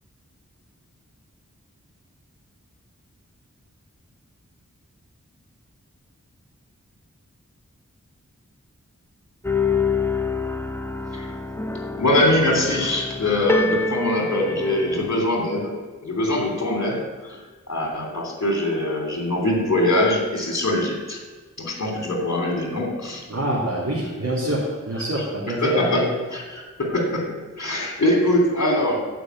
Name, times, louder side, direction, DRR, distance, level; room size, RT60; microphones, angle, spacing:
sound 1, 9.4-15.2, left 4 dB, 10° left, 1.1 m, -26 dB
voice 1, 12.0-15.7 16.0-17.4 17.7-21.2 21.6-23.2 25.6-26.1 26.3-29.0, left 1 dB, 60° left, 1 dB, 3.3 m, -23 dB
voice 2, 23.3-26.0, right 1 dB, 65° right, -8 dB, 3.2 m, -25 dB
15.0 x 5.3 x 9.4 m, 1.3 s
wide cardioid pair, 50°, 31 cm